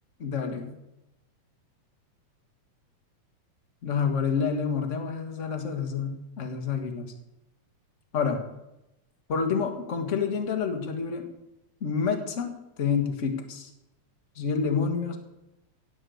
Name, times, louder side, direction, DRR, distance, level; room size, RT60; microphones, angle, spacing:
voice 1, 0.2-0.7 3.8-7.1 8.1-8.4 9.3-11.3 11.8-13.7 14.3-15.2, left 6 dB, 35° left, 5 dB, 1.4 m, -28 dB
17.0 x 6.6 x 7.9 m, 0.90 s
omnidirectional pair, 3.4 m